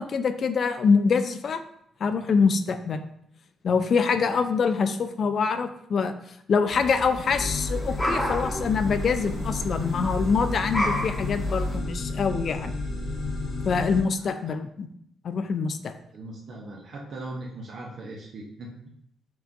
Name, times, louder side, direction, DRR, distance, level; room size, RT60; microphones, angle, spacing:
voice 1, 0.0-1.6 2.0-3.0 3.6-6.2 6.5-12.7 13.7-14.9 15.2-15.9, left 5 dB, 55° left, 9 dB, 0.3 m, -25 dB
sound 1, 6.7-11.8, equal, 20° left, 1.0 m, -33 dB
sound 2, 7.3-14.0, left 2 dB, 75° left, 1.2 m, -31 dB
voice 2, 16.1-18.7, right 2 dB, 60° right, -2 dB, 0.6 m, -39 dB
5.8 x 2.2 x 2.6 m, 0.72 s
cardioid pair, 90°, 0 cm